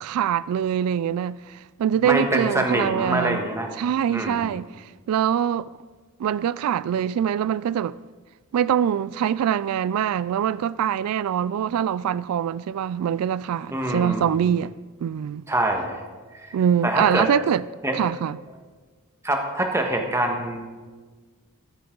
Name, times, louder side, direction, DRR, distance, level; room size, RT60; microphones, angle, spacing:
voice 1, 0.0-3.4 3.8-5.7 6.2-8.0 8.5-14.7 15.0-15.4 16.5-17.6 17.9-18.4, right 9 dB, 85° right, 0.3 m, -24 dB
voice 2, 2.0-3.7 4.1-4.5 13.7-14.2 15.5-16.0 16.3-16.6 16.8-17.3 17.8-18.0 19.2-20.7, right 1 dB, 10° right, 1.5 m, -25 dB
14.5 x 14.0 x 3.9 m
head